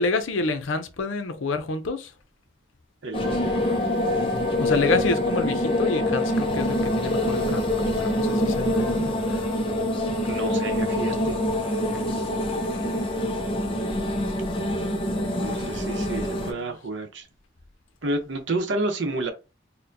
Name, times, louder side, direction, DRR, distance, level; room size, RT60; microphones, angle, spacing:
voice 1, 0.0-2.1 4.6-9.4 12.4-12.8 14.4-15.8 16.1-16.7, left 3 dB, 85° left, 0.6 m, -29 dB
voice 2, 3.0-4.0 9.0-9.4 10.2-11.4 11.9-12.0 12.8-13.4 15.3-17.3 18.0-19.3, right 2 dB, 70° right, 0.8 m, -31 dB
sound 1, 3.1-16.5, left 1 dB, 25° left, 0.6 m, -25 dB
Wind instrument woodwind instrument, 3.2-9.5, left 3 dB, 45° left, 1.0 m, -41 dB
4.3 x 2.1 x 2.6 m
head